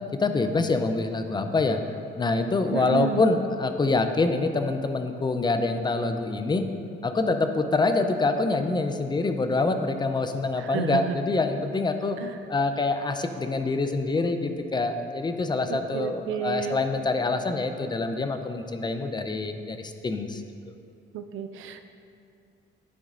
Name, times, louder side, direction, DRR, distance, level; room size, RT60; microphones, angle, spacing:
voice 1, 0.2-1.8 2.2-6.7 7.0-12.2 12.5-20.7, left 3 dB, 20° left, 7 dB, 0.5 m, -26 dB
voice 2, 2.7-3.2 10.6-11.2 12.2-12.3 15.7-16.8 21.1-21.8, right 9 dB, 85° right, 8 dB, 0.5 m, -31 dB
12.0 x 5.2 x 2.5 m, 2.5 s
cardioid pair, 90°, 20 cm